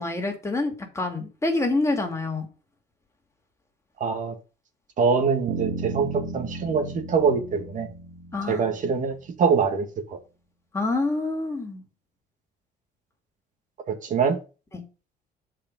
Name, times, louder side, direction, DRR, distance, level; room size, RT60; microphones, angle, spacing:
voice 1, 0.0-2.5 8.3-8.6 10.7-11.8 14.7-14.8, left 2 dB, 15° left, 2.5 m, -27 dB
voice 2, 4.0-4.3 5.0-7.9 8.5-10.2 13.9-14.4, right 5 dB, 50° right, 1.7 m, -24 dB
sound 1, 5.5-9.4, right 3 dB, 85° right, 1.8 m, -35 dB
8.6 x 5.0 x 5.3 m
cardioid pair, 110°, 17 cm